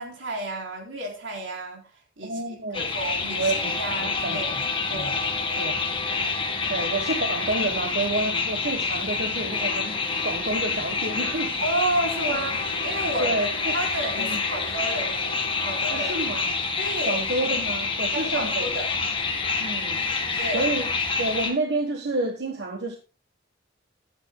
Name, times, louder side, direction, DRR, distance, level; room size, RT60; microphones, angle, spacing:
voice 1, 0.0-1.9 2.2-4.4 4.9-5.2 11.6-15.3 15.6-16.1 16.8-17.2 18.1-18.9 20.4-20.8, right 1 dB, 90° right, 3.8 m, -31 dB
voice 2, 2.2-2.8 3.3-3.8 4.2-4.6 4.9-5.1 5.6-5.7 6.7-11.6 12.3-12.4 13.2-13.7 14.2-14.4 15.9-16.6 17.0-18.7 19.6-20.0 20.5-20.9 21.2-23.0, right 2 dB, 60° right, 1.3 m, -29 dB
sound 1, 2.7-21.5, left 4 dB, 25° left, 1.8 m, -27 dB
15.0 x 11.0 x 2.2 m
head